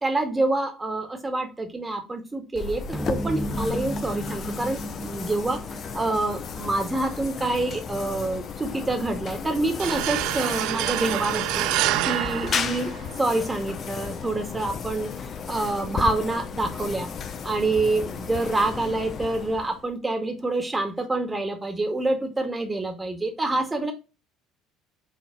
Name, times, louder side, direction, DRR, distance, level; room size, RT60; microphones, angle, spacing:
voice 1, 0.0-5.6 5.9-11.7 12.1-12.9 13.2-15.1 15.5-17.1 17.4-23.9, right 2 dB, 20° right, 2.0 m, -27 dB
sound 1, 2.5-19.9, left 6 dB, 45° left, 0.9 m, -34 dB
sound 2, 2.9-7.5, right 1 dB, 5° left, 0.8 m, -34 dB
sound 3, 9.8-13.4, right 15 dB, 65° right, 0.3 m, -27 dB
6.3 x 3.8 x 4.6 m
hypercardioid pair, 65°, 0 cm